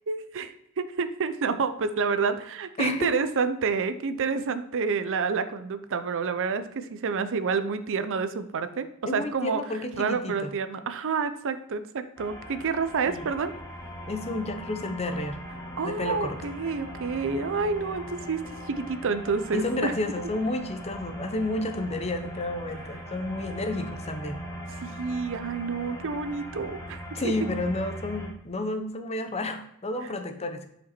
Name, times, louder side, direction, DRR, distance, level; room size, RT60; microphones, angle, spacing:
voice 1, 0.1-8.9 9.1-9.6 10.0-13.5 15.8-19.9 24.8-27.0, right 5 dB, 60° right, 12 dB, 0.6 m, -29 dB
voice 2, 2.8-3.2 9.0-10.5 13.1-13.3 14.1-15.4 15.8-16.4 19.5-24.4 27.1-30.7, left 2 dB, 30° left, 7 dB, 0.8 m, -31 dB
sound 1, 12.2-28.3, equal, 10° left, 1.7 m, -40 dB
6.9 x 5.2 x 4.3 m, 0.77 s
head